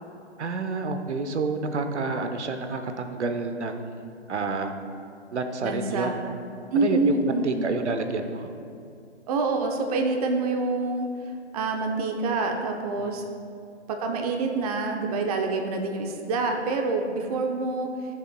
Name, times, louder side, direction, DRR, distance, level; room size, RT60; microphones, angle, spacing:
voice 1, 0.4-4.7 5.3-6.1 6.7-8.5 13.0-13.2, right 3 dB, 70° right, 7 dB, 0.9 m, -29 dB
voice 2, 5.6-6.2 6.7-7.8 9.3-11.1 11.5-13.2 13.9-17.9, right 3 dB, 35° right, 3 dB, 0.7 m, -26 dB
14.0 x 7.2 x 2.2 m, 2.4 s
figure-of-eight pair, 135°, 35 cm